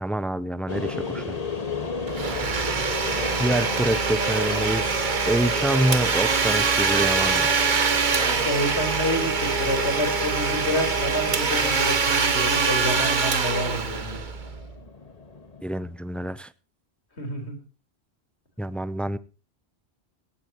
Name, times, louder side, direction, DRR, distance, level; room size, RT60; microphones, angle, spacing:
voice 1, 0.0-1.3 3.4-5.0 5.3-7.5 15.6-16.5 18.6-19.2, right 1 dB, ahead, 16 dB, 0.3 m, -26 dB
sound 1, 0.7-15.9, left 3 dB, 35° left, 1.6 m, -35 dB
Domestic sounds home sounds, 2.1-14.6, right 5 dB, 50° right, 1.3 m, -24 dB
voice 2, 8.2-14.2 17.2-17.6, left 1 dB, 90° left, 6 dB, 4.5 m, -28 dB
17.5 x 15.5 x 3.0 m, 0.32 s
omnidirectional pair, 1.1 m